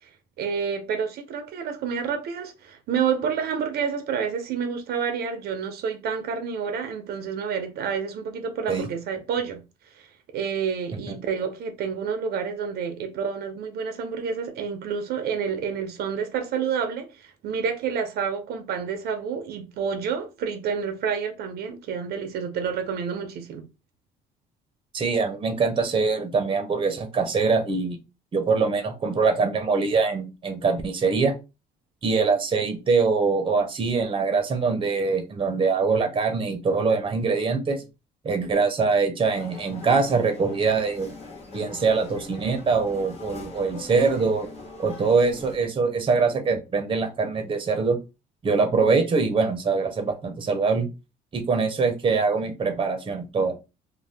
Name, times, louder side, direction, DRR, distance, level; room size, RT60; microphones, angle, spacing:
voice 1, 0.4-9.6 9.9-10.1 10.3-23.7, right 6 dB, 70° right, 0.6 m, -29 dB
voice 2, 24.9-28.0 28.3-31.3 32.0-37.8 38.2-41.1 41.5-44.5 44.8-48.0 48.4-50.9 51.3-53.5, right 4 dB, 30° right, 0.8 m, -23 dB
sound 1, 39.3-45.6, left 3 dB, 35° left, 1.1 m, -42 dB
2.6 x 2.2 x 3.3 m
cardioid pair, 110°, 17 cm